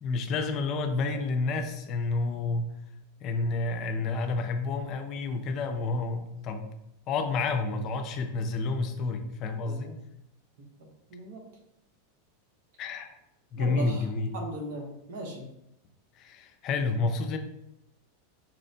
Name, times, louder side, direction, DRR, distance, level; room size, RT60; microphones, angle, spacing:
voice 1, 0.0-2.7 3.2-6.7 7.1-9.9 12.8-13.2 13.5-14.3 16.2-17.4, left 3 dB, 45° left, 6 dB, 0.4 m, -30 dB
voice 2, 9.6-10.0 10.6-10.7 11.1-11.4 13.6-14.1 14.3-15.5, right 1 dB, 65° right, 0 dB, 0.8 m, -38 dB
4.2 x 2.1 x 2.6 m, 0.83 s
hypercardioid pair, 100°, 0 cm